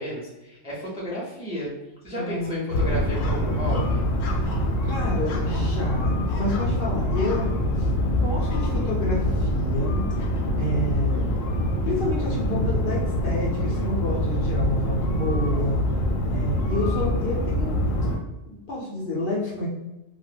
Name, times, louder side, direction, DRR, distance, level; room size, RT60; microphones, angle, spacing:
voice 1, 0.0-1.7 2.0-4.0, equal, 10° right, -6 dB, 0.3 m, -32 dB
voice 2, 2.1-3.8 4.4-4.6 4.9-7.5 7.8-10.1 10.6-11.3 11.8-15.8 16.3-17.8 18.5-19.7, left 1 dB, 60° left, -5 dB, 0.6 m, -30 dB
sound 1, 2.7-18.2, left 1 dB, 85° left, 1.0 m, -25 dB
2.2 x 2.0 x 3.2 m, 1.0 s
omnidirectional pair, 1.3 m